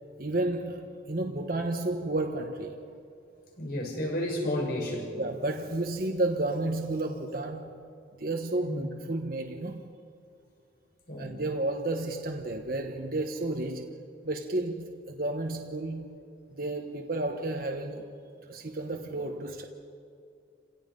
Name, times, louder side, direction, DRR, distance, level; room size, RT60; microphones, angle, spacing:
voice 1, 0.2-2.7 5.2-7.8 8.2-9.8 11.2-14.0 14.2-16.1 16.6-18.1 18.5-19.6, right 2 dB, 55° right, 3 dB, 1.3 m, -32 dB
voice 2, 3.6-5.2 8.7-8.9 11.1-11.4, left 1 dB, 55° left, -2 dB, 6.0 m, -32 dB
29.5 x 17.0 x 5.4 m, 2.4 s
head